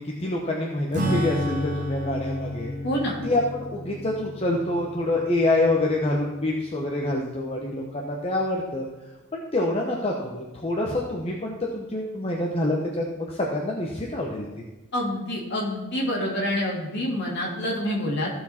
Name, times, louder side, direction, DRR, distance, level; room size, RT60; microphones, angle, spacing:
voice 1, 0.0-2.7 3.2-8.9 9.3-14.5, left 1 dB, 25° left, -2 dB, 1.1 m, -26 dB
Acoustic guitar / Strum, 0.9-6.9, left 1 dB, 35° right, 2.0 m, -32 dB
voice 2, 2.8-3.2 14.9-18.3, left 1 dB, 50° left, -3 dB, 2.8 m, -27 dB
15.0 x 6.2 x 4.4 m, 1.1 s
head